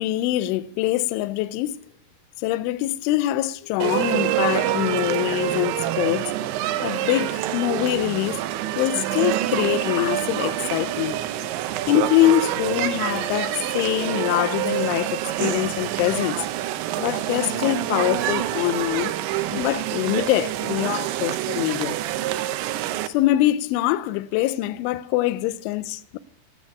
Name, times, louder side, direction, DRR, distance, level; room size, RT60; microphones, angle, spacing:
voice 1, 0.0-1.8 2.4-6.5 6.8-8.4 8.8-11.5 11.9-16.5 17.0-19.1 19.5-22.0 23.1-26.2, left 15 dB, 85° left, 2.8 m, -24 dB
sound 1, 3.8-23.1, right 13 dB, 85° right, 2.6 m, -26 dB
10.5 x 9.2 x 7.0 m
omnidirectional pair, 6.0 m